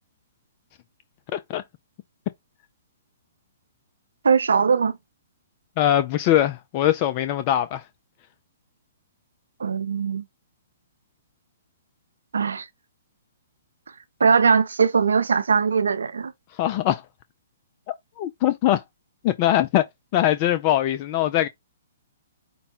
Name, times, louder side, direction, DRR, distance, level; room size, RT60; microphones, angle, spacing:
voice 1, 1.3-1.6 5.8-7.8 16.5-17.0 18.2-18.8 19.2-19.9 20.1-21.5, left 12 dB, 40° left, 0.4 m, -21 dB
voice 2, 4.2-5.0 9.6-10.2 12.3-12.7 14.2-16.3, right 5 dB, 80° right, 0.5 m, -20 dB
5.3 x 2.2 x 4.2 m
hypercardioid pair, 130°, 0 cm